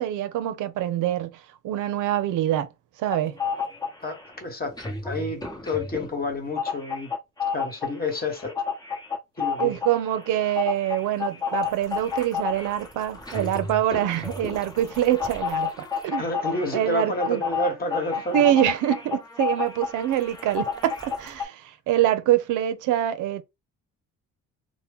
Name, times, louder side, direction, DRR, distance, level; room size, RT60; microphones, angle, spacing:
voice 1, 0.0-2.7 3.0-3.4 9.6-16.3 16.7-17.4 18.3-23.4, right 12 dB, 85° right, 0.6 m, -25 dB
sound 1, 3.1-4.3 4.6-21.4, left 6 dB, 15° left, 0.9 m, -31 dB
voice 2, 4.0-7.1 7.5-8.6 9.4-9.8 16.2-18.5, left 2 dB, 30° left, 1.2 m, -30 dB
2.8 x 2.2 x 3.5 m
cardioid pair, 90°, 30 cm